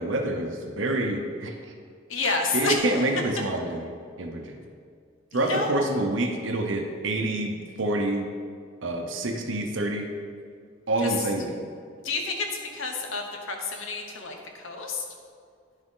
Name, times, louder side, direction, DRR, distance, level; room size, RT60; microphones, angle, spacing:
voice 1, 0.0-1.5 2.5-3.9 4.2-4.6 5.3-8.3 8.8-10.1 10.9-11.5, right 1 dB, 75° right, 3 dB, 0.8 m, -27 dB
voice 2, 2.1-2.8 5.3-5.9 11.0-11.1 12.0-12.5 12.7-15.0, left 3 dB, 90° left, 2 dB, 1.2 m, -29 dB
9.9 x 6.3 x 3.8 m, 2.2 s
head